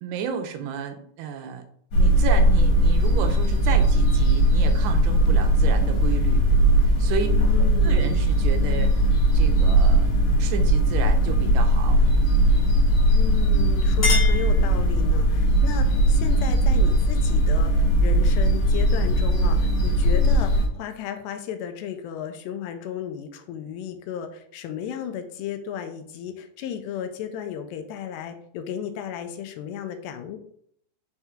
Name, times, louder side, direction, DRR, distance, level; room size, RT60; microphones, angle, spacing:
voice 1, 0.0-1.6 1.9-6.5 6.8-7.3 7.8-10.1 10.4-12.0, right 7 dB, 80° right, 6 dB, 2.7 m, -32 dB
sound 1, 1.9-20.7, right 1 dB, 65° left, 3.4 m, -19 dB
voice 2, 7.3-8.2 13.1-30.4, left 9 dB, 80° left, 7 dB, 2.8 m, -34 dB
Chink clink, 13.4-15.3, left 2 dB, 40° left, 3.1 m, -30 dB
6.7 x 4.5 x 3.6 m, 0.65 s
omnidirectional pair, 4.9 m